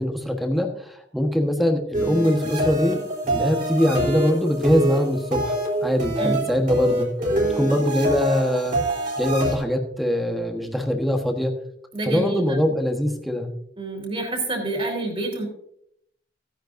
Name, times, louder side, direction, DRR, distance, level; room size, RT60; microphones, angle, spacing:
voice 1, 0.0-5.6 5.8-7.1 7.6-8.8 9.2-11.5 12.0-13.5, left 1 dB, ahead, 4 dB, 1.3 m, -22 dB
sound 1, 1.9-9.6, right 1 dB, 50° right, 3.9 m, -25 dB
voice 2, 11.9-12.6 13.8-15.4, right 2 dB, 30° right, 1 dB, 3.7 m, -28 dB
16.0 x 10.0 x 2.6 m, 0.70 s
head